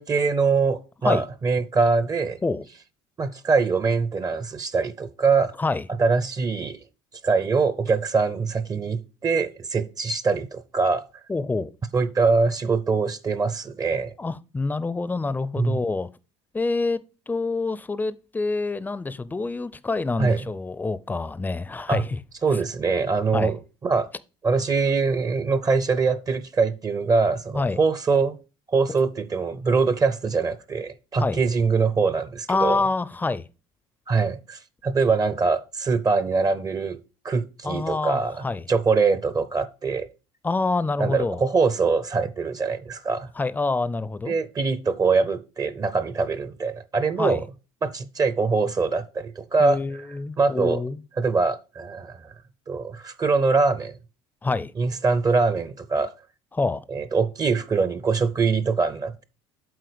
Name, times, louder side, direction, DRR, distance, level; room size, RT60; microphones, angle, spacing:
voice 1, 0.0-2.4 3.2-5.5 6.0-6.8 7.2-11.0 11.9-14.1 15.6-15.8 20.2-20.4 21.9-22.0 22.4-23.6 23.8-24.1 24.4-28.4 28.7-32.8 34.1-37.0 37.2-40.1 41.0-43.3 44.3-47.4 47.8-49.8 50.4-50.8 51.2-52.3 52.7-54.0 54.8-56.1 56.9-59.2, right 4 dB, 25° right, 0.6 m, -23 dB
voice 2, 11.3-11.7 14.2-16.1 16.5-17.0 17.3-22.2 22.5-22.6 23.3-23.6 27.5-27.8 31.2-31.4 32.5-33.4 37.6-38.6 40.4-41.4 43.4-44.4 47.2-47.4 49.6-51.0 54.4-54.7 56.5-56.8, left 3 dB, 15° left, 0.5 m, -26 dB
7.9 x 4.0 x 5.1 m
supercardioid pair, 85°, 14 cm